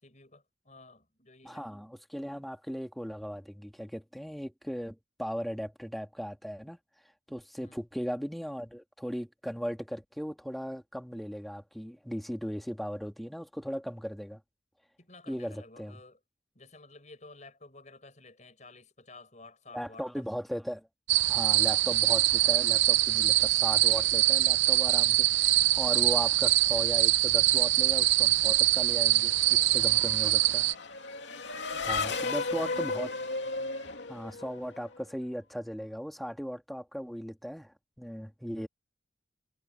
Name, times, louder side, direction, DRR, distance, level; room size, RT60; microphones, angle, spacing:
voice 1, 0.0-1.7 7.6-7.8 15.0-16.2 16.5-20.2 26.1-26.3 30.0-30.4 32.1-32.9, left 3 dB, 40° left, 5.8 m, -52 dB
voice 2, 1.4-6.8 7.3-14.4 15.3-16.0 19.7-20.9 21.3-30.6 31.5-33.1 34.1-38.7, equal, ahead, 2.0 m, -37 dB
sound 1, 21.1-30.7, right 16 dB, 85° right, 0.7 m, -24 dB
Race car auto racing / Accelerating revving vroom, 28.9-35.0, left 3 dB, 75° left, 2.7 m, -35 dB
head